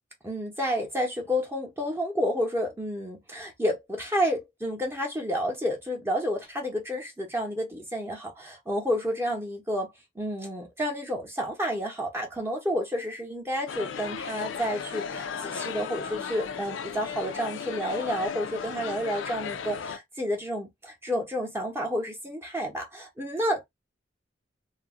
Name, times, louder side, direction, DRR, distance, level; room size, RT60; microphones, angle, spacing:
voice 1, 0.2-9.9 10.2-23.6, equal, 15° right, 0.8 m, -30 dB
sound 1, 13.7-20.0, left 6 dB, 70° left, 0.4 m, -35 dB
2.5 x 2.1 x 3.6 m
head